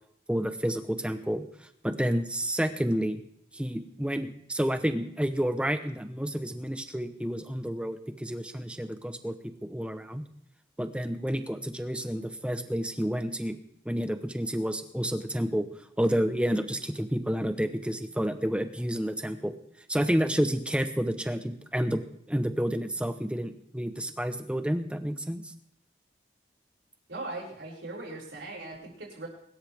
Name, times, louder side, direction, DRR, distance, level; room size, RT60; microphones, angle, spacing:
voice 1, 0.3-1.4 1.8-3.2 3.5-9.3 9.6-10.2 10.8-13.6 13.8-15.7 16.0-19.5 19.9-22.0 22.3-25.5, equal, 5° right, 8 dB, 0.9 m, -30 dB
voice 2, 27.1-29.3, right 2 dB, 85° right, -2 dB, 6.3 m, -39 dB
23.0 x 13.0 x 3.6 m, 0.70 s
head